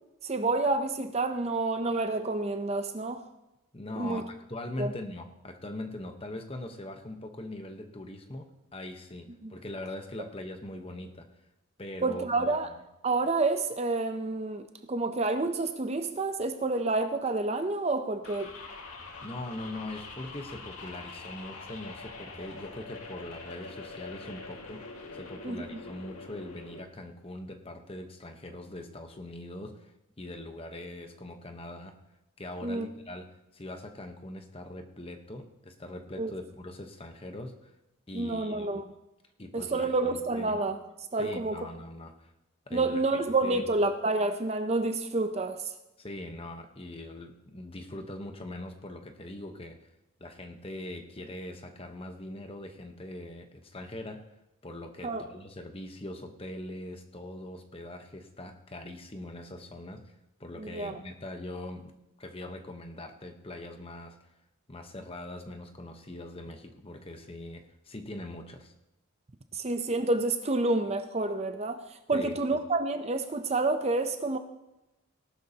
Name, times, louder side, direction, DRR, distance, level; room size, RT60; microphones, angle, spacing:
voice 1, 0.2-3.2 4.0-4.2 4.8-4.9 9.4-9.5 12.0-12.7 13.0-18.5 25.4-25.6 32.6-32.9 36.2-36.3 38.1-38.8 39.5-40.8 41.1-41.7 42.7-45.7 55.0-55.2 60.6-61.0 69.5-74.4, right 2 dB, 30° right, 8 dB, 0.6 m, -29 dB
voice 2, 3.7-11.4 11.8-12.6 19.2-24.9 25.1-32.0 32.4-37.7 38.1-38.8 39.4-40.6 41.2-42.3 42.7-43.0 43.4-43.7 46.0-49.9 50.2-54.2 54.6-60.1 60.4-61.9 62.2-64.2 64.7-68.7 72.1-72.6, left 1 dB, 25° left, 6 dB, 1.0 m, -42 dB
sound 1, 18.2-26.8, left 3 dB, 90° left, 2.0 m, -44 dB
18.0 x 12.0 x 2.9 m, 0.95 s
head